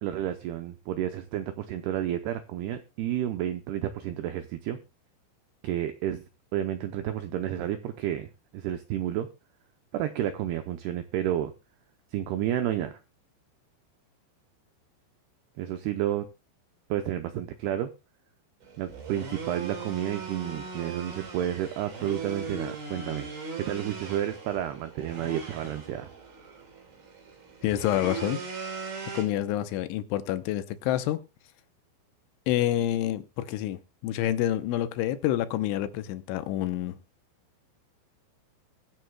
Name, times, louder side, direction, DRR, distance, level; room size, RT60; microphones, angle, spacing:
voice 1, 0.0-4.8 5.6-6.2 6.5-8.3 8.5-9.3 9.9-11.5 12.1-13.0 15.6-16.3 16.9-17.9 18.8-23.3 23.6-26.1, right 11 dB, 85° right, 8 dB, 2.3 m, -31 dB
sound 1, 18.6-29.2, right 4 dB, 50° right, 4.4 m, -39 dB
voice 2, 27.6-28.4 29.1-31.2 32.5-37.0, left 13 dB, 80° left, 11 dB, 3.1 m, -28 dB
22.5 x 8.0 x 2.2 m, 0.27 s
omnidirectional pair, 5.6 m